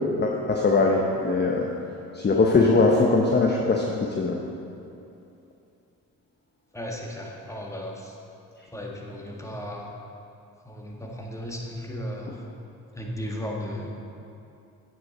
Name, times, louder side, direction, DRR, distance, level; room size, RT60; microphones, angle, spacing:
voice 1, 0.2-1.7 2.1-4.4, left 3 dB, 25° left, 0 dB, 1.0 m, -21 dB
voice 2, 6.7-8.1 8.7-9.9 10.7-12.3 13.0-13.9, equal, 5° left, -2 dB, 1.8 m, -35 dB
8.8 x 8.3 x 4.3 m, 2.7 s
hypercardioid pair, 45°, 40 cm